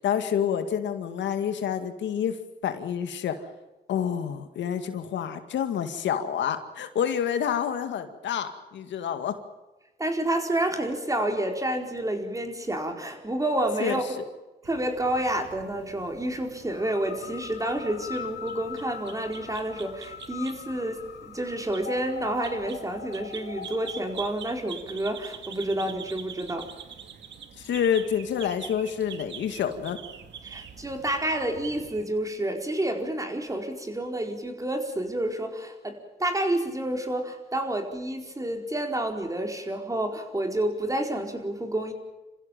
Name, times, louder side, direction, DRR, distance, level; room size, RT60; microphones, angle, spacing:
voice 1, 0.0-2.4 2.6-3.5 3.9-9.4 13.8-14.0 27.6-30.0, left 8 dB, 85° left, 8 dB, 2.1 m, -28 dB
voice 2, 10.0-14.2 14.6-26.7 30.4-41.9, right 1 dB, 20° right, 4 dB, 4.7 m, -29 dB
sound 1, 14.6-32.1, right 7 dB, 75° right, 2.2 m, -45 dB
sound 2, 16.7-24.2, left 8 dB, 65° left, 1.3 m, -42 dB
28.0 x 15.5 x 9.1 m, 1.1 s
cardioid pair, 85°, 19 cm